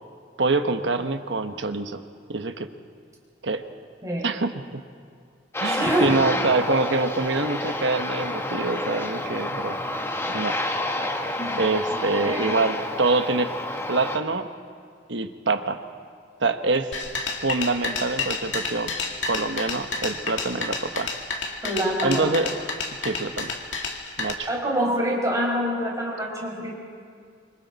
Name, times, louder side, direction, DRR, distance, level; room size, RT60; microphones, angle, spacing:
voice 1, 0.4-2.0 2.3-2.7 3.4-3.7 4.2-4.8 5.6-9.8 10.3-10.6 11.6-13.5 13.9-14.5 15.1-15.8 16.4-16.9 17.4-18.9 19.3-21.1 22.0-22.5 23.0-23.5 24.2-24.5, right 3 dB, 75° right, 8 dB, 1.1 m, -25 dB
Aircraft, 5.5-14.2, left 1 dB, 15° left, 1.3 m, -29 dB
voice 2, 5.6-6.1 11.4-11.6 12.2-12.6 21.6-22.3 24.5-26.8, equal, 20° right, -3 dB, 5.1 m, -26 dB
sound 1, 16.9-24.3, left 4 dB, 90° left, 2.2 m, -30 dB
25.5 x 25.0 x 4.1 m, 2.2 s
head